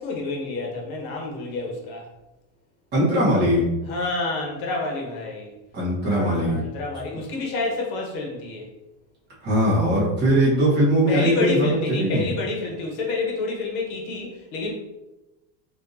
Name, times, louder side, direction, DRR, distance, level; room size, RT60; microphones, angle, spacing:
voice 1, 0.0-2.1 3.8-5.5 6.0-8.7 11.1-14.7, left 3 dB, 75° left, -1 dB, 1.2 m, -29 dB
voice 2, 2.9-3.7 5.7-6.6 9.4-12.3, equal, 25° right, -7 dB, 1.1 m, -20 dB
4.7 x 2.5 x 2.6 m, 1.0 s
cardioid pair, 175°, 43 cm